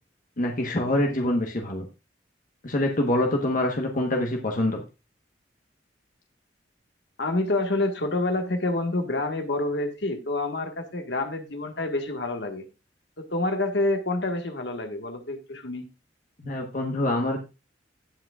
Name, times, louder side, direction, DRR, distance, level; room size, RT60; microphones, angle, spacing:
voice 1, 0.4-1.8 2.6-4.8 16.4-17.4, left 1 dB, 45° left, 1 dB, 1.2 m, -25 dB
voice 2, 7.2-12.6 13.2-15.8, left 2 dB, 70° left, 5 dB, 1.6 m, -28 dB
17.0 x 5.9 x 2.4 m, 0.28 s
head